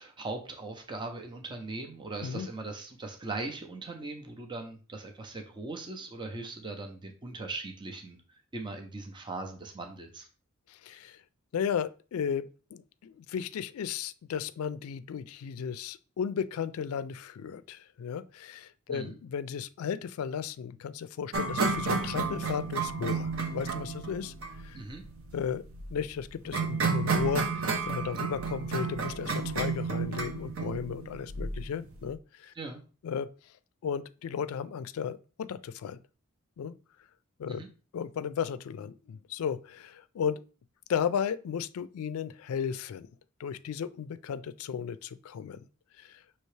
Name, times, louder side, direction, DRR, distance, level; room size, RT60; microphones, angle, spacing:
voice 1, 0.0-8.2 8.5-10.3 18.9-19.2 24.7-25.0 32.6-32.8 37.5-37.7, right 3 dB, 20° right, 0.5 m, -39 dB
voice 2, 10.7-11.2 11.5-24.3 24.6-24.8 25.3-25.7 25.9-32.5 33.0-33.5 33.8-36.0 36.6-36.7 37.4-37.6 37.9-40.4 40.9-43.1 43.4-45.7 46.0-46.2, left 7 dB, 80° left, 0.3 m, -35 dB
sound 1, 21.3-32.1, right 4 dB, 70° right, 0.7 m, -32 dB
5.5 x 2.8 x 3.2 m
head